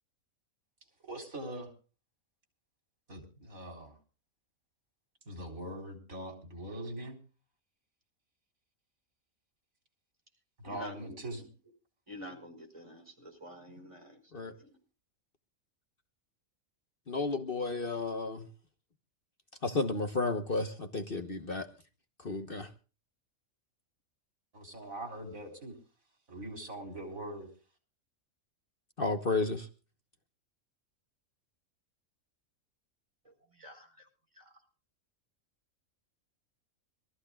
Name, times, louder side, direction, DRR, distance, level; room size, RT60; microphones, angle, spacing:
voice 1, 1.0-1.7 3.1-4.0 5.3-7.2 10.6-11.4 24.5-25.7 26.3-27.5, right 1 dB, 80° right, 4.1 m, -42 dB
voice 2, 10.6-11.5 12.1-14.8 33.2-34.1 34.3-34.5, equal, 20° right, 5.0 m, -49 dB
voice 3, 17.1-18.5 19.6-21.7 22.2-22.7 29.0-29.7, left 3 dB, 45° left, 1.3 m, -32 dB
25.5 x 14.5 x 2.4 m
omnidirectional pair, 1.4 m